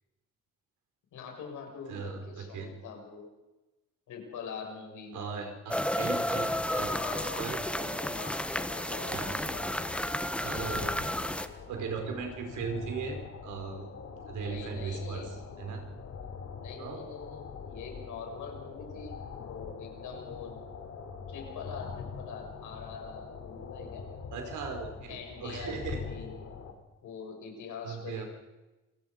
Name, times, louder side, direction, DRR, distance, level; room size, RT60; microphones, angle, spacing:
voice 1, 1.1-3.3 4.1-5.3 6.9-9.7 10.6-11.0 14.4-15.4 16.6-20.6 21.3-24.1 25.1-26.3 27.0-28.3, left 5 dB, 80° left, 2 dB, 6.7 m, -43 dB
voice 2, 1.9-2.7 5.1-7.6 9.1-9.4 10.4-10.9 11.4-13.9 14.3-15.3 15.6-15.8 16.8-17.0 24.3-26.0 27.8-28.2, right 5 dB, 80° right, 4 dB, 4.9 m, -38 dB
sound 1, 5.7-11.5, left 1 dB, 5° left, 1.3 m, -32 dB
windy day, 9.0-26.7, left 5 dB, 55° left, 3.5 m, -44 dB
27.5 x 18.0 x 5.3 m, 1.1 s
cardioid pair, 90°, 30 cm